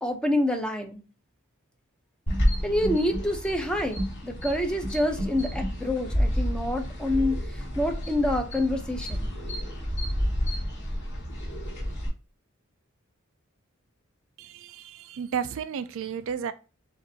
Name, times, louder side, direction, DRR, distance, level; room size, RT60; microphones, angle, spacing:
voice 1, 0.0-1.0 2.6-9.3, left 1 dB, 5° left, 0.6 m, -27 dB
sound 1, 2.3-12.1, equal, 55° left, 2.3 m, -30 dB
voice 2, 14.4-16.5, right 7 dB, 65° right, 0.3 m, -33 dB
7.1 x 2.6 x 2.7 m
head